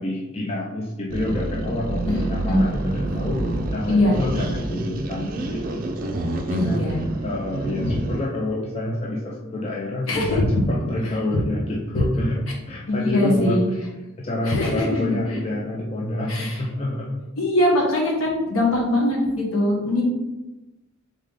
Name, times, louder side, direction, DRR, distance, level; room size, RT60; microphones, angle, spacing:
voice 1, 0.0-13.7 14.2-17.2, left 1 dB, 30° left, -2 dB, 0.5 m, -28 dB
sound 1, 1.1-8.3, right 1 dB, 40° right, 0.4 m, -28 dB
voice 2, 2.1-2.6 3.9-4.2 6.5-7.0 7.8-7.9 10.1-10.4 12.9-13.6 14.5-15.4 16.3-16.6 17.4-20.0, left 1 dB, 65° left, -1 dB, 1.1 m, -22 dB
3.6 x 3.5 x 3.6 m, 1.0 s
head